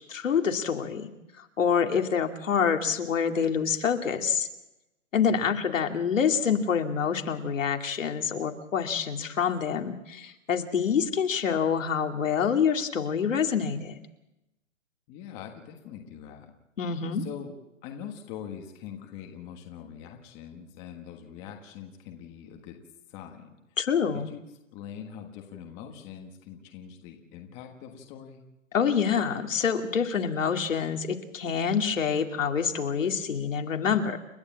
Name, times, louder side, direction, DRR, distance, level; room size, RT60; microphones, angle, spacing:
voice 1, 0.1-1.1 1.4-4.5 5.1-14.0 16.8-17.2 23.8-24.3 28.7-34.2, left 7 dB, 75° left, 4 dB, 2.5 m, -26 dB
voice 2, 15.1-16.5 17.2-17.5 17.8-22.8 23.1-23.5 24.1-24.4 24.7-28.4, left 8 dB, 15° left, 3 dB, 1.5 m, -43 dB
29.5 x 11.5 x 8.7 m, 0.94 s
hypercardioid pair, 165°, 39 cm